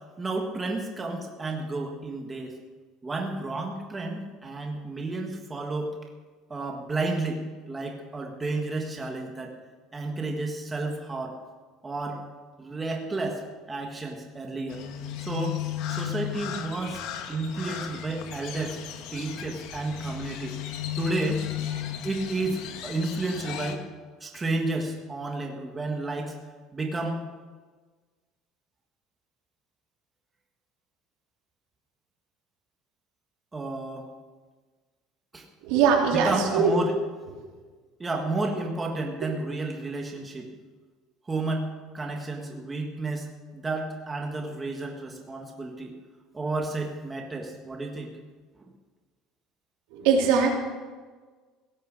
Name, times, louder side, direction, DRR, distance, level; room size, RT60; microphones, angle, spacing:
voice 1, 0.2-2.5 3.0-5.9 6.5-9.5 9.9-11.4 11.8-12.2 12.6-14.8 15.2-15.6 15.9-17.0 17.3-18.8 19.1-20.6 21.0-21.5 22.0-23.8 24.2-26.3 26.7-27.2 33.5-34.1 35.3-35.5 36.1-36.9 38.0-40.5 41.3-41.7 41.9-43.3 43.5-45.9 46.3-48.1 48.6-48.7, right 2 dB, 15° right, 1 dB, 1.6 m, -31 dB
Crow, 14.7-23.8, left 10 dB, 65° left, 1.4 m, -35 dB
voice 2, 35.6-36.7 37.3-37.5 49.9-50.5, right 6 dB, 85° right, -1 dB, 3.5 m, -21 dB
17.0 x 9.8 x 6.5 m, 1.4 s
cardioid pair, 155°, 0 cm